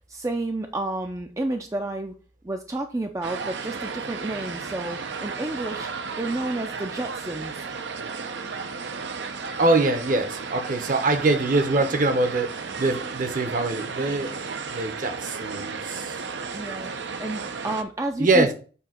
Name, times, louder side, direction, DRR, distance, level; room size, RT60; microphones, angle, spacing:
voice 1, 0.1-2.1 2.4-5.9 6.2-7.7 16.5-16.9 17.2-18.5, right 2 dB, 15° right, 0.4 m, -30 dB
sound 1, 3.2-17.8, right 5 dB, 75° right, 0.7 m, -34 dB
voice 2, 9.6-16.2 18.2-18.5, right 2 dB, 45° right, 0.9 m, -24 dB
6.9 x 2.8 x 5.8 m
head